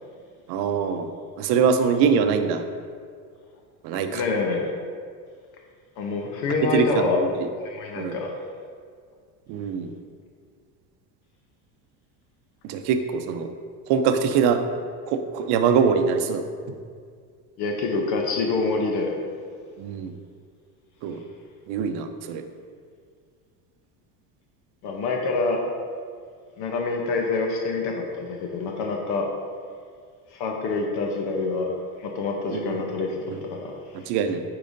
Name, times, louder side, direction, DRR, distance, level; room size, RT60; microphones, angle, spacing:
voice 1, 0.5-1.1 1.4-2.6 3.8-4.2 6.7-7.5 8.0-8.1 9.5-9.9 12.6-13.5 13.9-14.6 15.1-16.4 19.8-20.1 21.0-21.2 21.7-22.5 32.5-32.8 33.3-33.4 34.1-34.4, right 6 dB, 65° right, 8 dB, 0.7 m, -23 dB
voice 2, 4.1-4.7 6.0-7.2 7.5-8.3 17.6-19.2 24.8-25.6 26.6-29.3 30.3-31.7 32.0-34.1, left 3 dB, 60° left, 1 dB, 0.9 m, -26 dB
8.4 x 4.8 x 2.6 m, 2.1 s
supercardioid pair, 120°, 44 cm